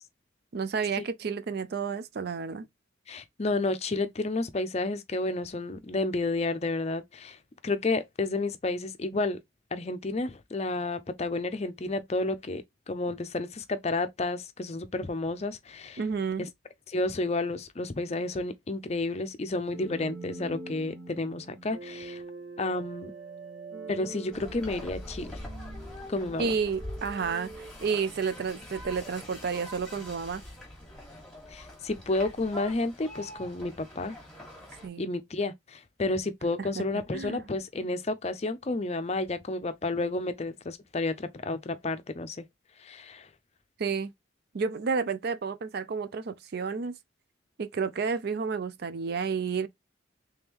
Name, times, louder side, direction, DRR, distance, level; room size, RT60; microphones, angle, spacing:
voice 1, 0.5-2.7 16.0-16.4 26.4-27.5 27.8-30.4 34.8-35.0 36.6-36.8 37.1-37.4 43.8-44.1 44.5-46.9 47.6-49.7, right 5 dB, 50° right, 0.4 m, -31 dB
voice 2, 3.1-7.4 7.6-9.4 9.7-16.0 16.4-16.5 16.9-22.2 22.6-23.1 23.9-25.4 26.1-26.5 31.5-34.1 35.0-42.4 42.8-43.3, left 2 dB, 35° left, 0.5 m, -31 dB
sound 1, 19.7-28.7, right 3 dB, 70° right, 1.2 m, -44 dB
sound 2, 24.3-34.9, left 1 dB, 5° left, 1.4 m, -44 dB
3.6 x 3.4 x 2.9 m
head